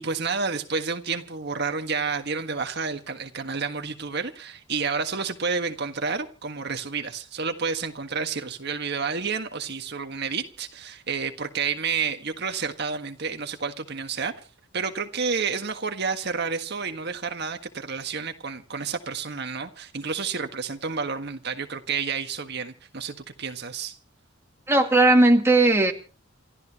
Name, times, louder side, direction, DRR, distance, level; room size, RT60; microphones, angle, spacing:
voice 1, 0.0-14.3 14.7-24.0, right 5 dB, 55° right, 1.6 m, -30 dB
voice 2, 24.7-25.9, right 2 dB, 10° right, 2.1 m, -17 dB
28.5 x 13.0 x 3.0 m
head